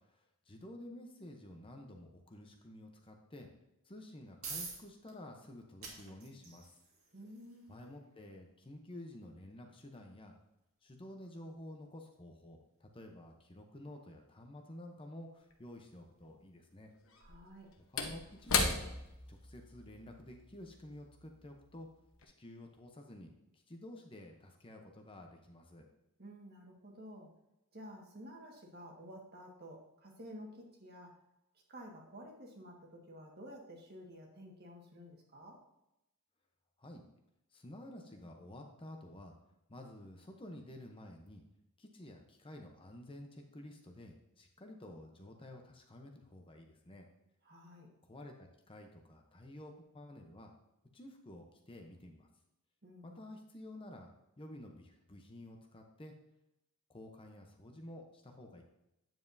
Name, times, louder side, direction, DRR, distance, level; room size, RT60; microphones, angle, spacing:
voice 1, 0.0-3.5 3.8-6.8 7.7-10.4 10.8-16.9 17.9-18.9 19.3-21.9 22.2-25.9 36.8-37.0 37.5-39.4 39.7-41.4 41.8-47.1 48.0-50.5 50.9-52.3 53.0-54.1 54.4-56.1 56.9-58.6, left 1 dB, 25° left, 3 dB, 0.8 m, -51 dB
sound 1, 4.0-18.8, right 4 dB, 70° right, 1.9 m, -54 dB
voice 2, 7.1-7.8 17.2-17.7 26.2-27.3 27.7-31.2 31.7-35.6 47.4-47.9 52.8-53.2, equal, 45° right, 0 dB, 1.6 m, -52 dB
Slam / Wood, 15.5-15.6 17.1-21.8 22.1-22.2, left 4 dB, 70° left, 1.0 m, -37 dB
9.1 x 7.5 x 2.7 m, 0.88 s
head